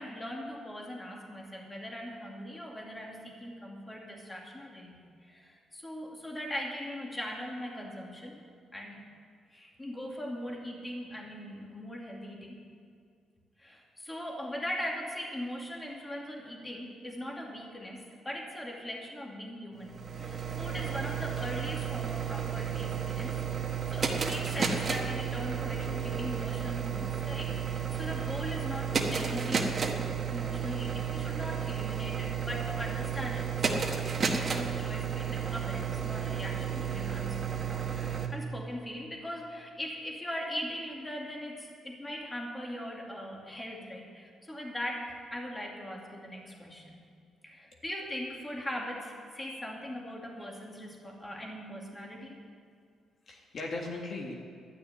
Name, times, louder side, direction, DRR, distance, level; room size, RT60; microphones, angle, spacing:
voice 1, 0.0-8.4 8.7-9.0 9.5-12.6 13.6-23.4 23.9-29.8 30.3-37.4 37.7-47.0 47.4-52.4, equal, 15° left, -1 dB, 2.5 m, -40 dB
sound 1, 19.8-38.3, right 7 dB, 40° right, 1.5 m, -32 dB
voice 2, 53.3-54.3, left 2 dB, 50° left, 0 dB, 1.8 m, -39 dB
12.5 x 6.4 x 9.6 m, 2.4 s
cardioid pair, 90°, 0 cm